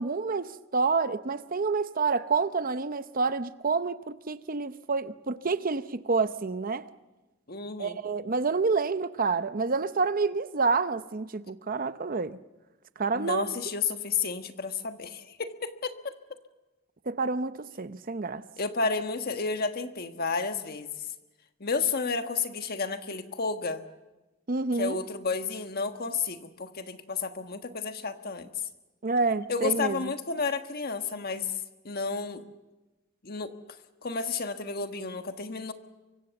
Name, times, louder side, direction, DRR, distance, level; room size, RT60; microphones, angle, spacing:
voice 1, 0.0-6.9 7.8-12.4 13.0-13.6 17.1-18.4 24.5-25.0 29.0-30.1, right 4 dB, 45° right, 0.7 m, -28 dB
voice 2, 7.5-8.0 13.1-15.9 18.6-20.9 21.6-23.8 24.7-28.5 29.5-31.6 31.8-32.4 33.2-33.5 34.0-35.7, left 4 dB, 50° left, 1.4 m, -31 dB
24.5 x 24.0 x 7.1 m
head